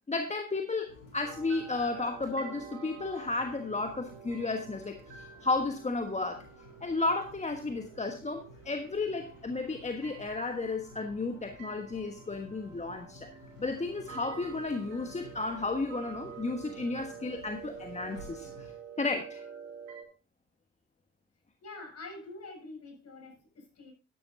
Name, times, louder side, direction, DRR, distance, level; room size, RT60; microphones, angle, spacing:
voice 1, 0.1-6.4 6.8-13.3 13.6-18.7 19.0-19.4, left 3 dB, 20° left, 1.3 m, -33 dB
sound 1, 0.8-18.7, left 2 dB, 85° left, 2.8 m, -54 dB
sound 2, 1.2-20.1, right 7 dB, 70° right, 3.5 m, -49 dB
voice 2, 21.6-23.9, left 2 dB, 45° left, 6.8 m, -46 dB
12.5 x 12.0 x 2.7 m
figure-of-eight pair, 50°, 37 cm